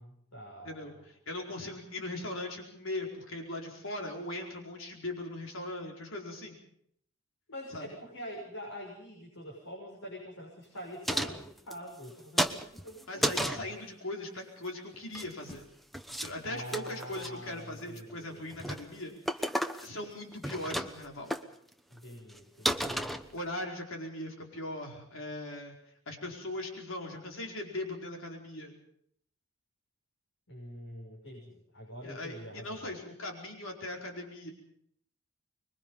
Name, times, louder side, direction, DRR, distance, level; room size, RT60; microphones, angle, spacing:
voice 1, 0.0-1.0 7.5-13.7 16.4-18.5 21.9-22.9 30.5-32.9, equal, 85° left, -2 dB, 6.6 m, -45 dB
voice 2, 0.6-6.6 7.7-7.9 13.1-15.7 16.2-19.5 19.8-21.3 22.8-23.0 23.3-25.8 26.1-28.8 32.0-34.5, left 1 dB, 65° left, 1 dB, 4.7 m, -39 dB
sound 1, 11.0-12.1 12.4-13.7 14.9-15.6 15.9-16.3 16.6-17.3 17.8-18.1 18.5-18.8 19.3-20.1 20.3-21.1 21.3-21.4 22.0-22.1 22.3-22.4 22.7-23.6, equal, ahead, 1.0 m, -33 dB
25.5 x 22.5 x 5.6 m, 0.68 s
head